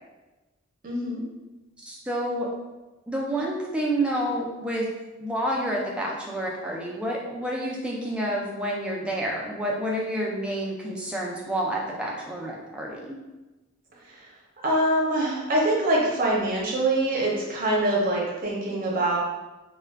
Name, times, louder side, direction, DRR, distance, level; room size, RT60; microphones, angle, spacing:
voice 1, 0.8-1.2 14.2-14.3 14.6-19.2, right 1 dB, 45° right, -3 dB, 0.7 m, -24 dB
voice 2, 1.8-2.5 3.1-4.8 5.2-13.2, right 1 dB, 5° right, -3 dB, 0.4 m, -29 dB
2.3 x 2.2 x 3.4 m, 1.1 s
head